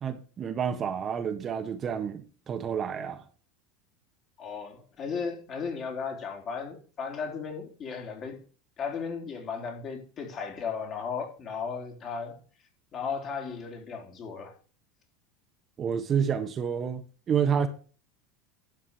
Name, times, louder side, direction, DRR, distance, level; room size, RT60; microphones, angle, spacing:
voice 1, 0.0-3.2 15.8-17.0 17.3-17.7, right 7 dB, 35° right, 1.5 m, -29 dB
voice 2, 4.4-8.4 8.8-12.4 12.9-14.5, left 5 dB, 40° left, 3.8 m, -35 dB
11.5 x 5.4 x 6.6 m
hypercardioid pair, 85°, 0 cm